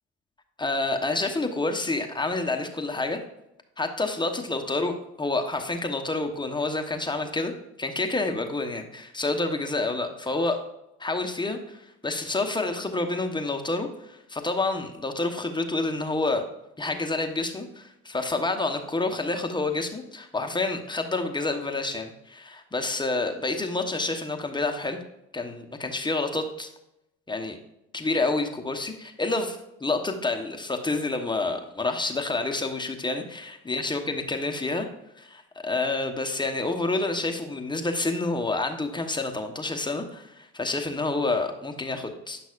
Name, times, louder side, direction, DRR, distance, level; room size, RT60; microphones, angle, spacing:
voice 1, 0.6-3.2 3.8-7.5 7.8-10.6 11.0-16.4 16.8-25.0 25.3-26.7 27.3-27.6 27.9-34.9 35.2-42.4, left 2 dB, 15° left, 4 dB, 1.1 m, -28 dB
9.5 x 5.9 x 2.5 m, 0.84 s
hypercardioid pair, 65°, 33 cm